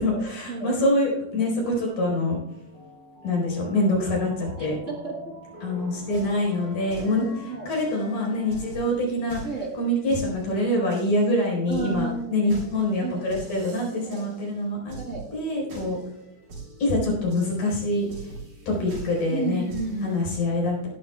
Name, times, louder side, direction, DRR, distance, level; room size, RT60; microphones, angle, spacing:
voice 1, 0.0-2.4 3.2-4.8 5.6-7.3 7.7-9.4 9.8-15.0 15.3-16.0 16.8-18.3 18.7-19.6 20.0-20.9, left 1 dB, 75° left, -1 dB, 6.1 m, -25 dB
sound 1, 1.9-9.2, left 1 dB, 45° left, 3.8 m, -44 dB
voice 2, 4.6-5.3 7.2-7.7 9.4-9.7 11.7-12.7 13.0-13.2 14.0-14.2 15.0-15.2 19.3-20.2, right 4 dB, 40° right, -1 dB, 1.1 m, -32 dB
sound 2, 6.1-20.2, right 3 dB, 70° right, 5.6 m, -43 dB
17.5 x 12.5 x 2.3 m, 0.80 s
omnidirectional pair, 3.6 m